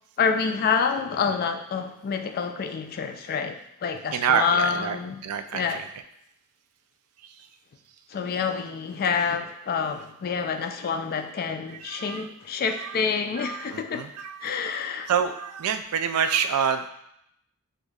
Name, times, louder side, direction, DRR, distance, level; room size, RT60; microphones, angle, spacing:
voice 1, 0.2-5.2 5.5-5.8 8.1-14.1 14.4-15.1, left 6 dB, 40° left, 6 dB, 0.3 m, -27 dB
voice 2, 4.1-5.0 5.2-5.8 11.7-12.3 12.7-12.9 13.4-14.5 15.1-16.9, right 7 dB, 80° right, 9 dB, 0.3 m, -27 dB
6.2 x 2.5 x 2.3 m, 0.77 s
head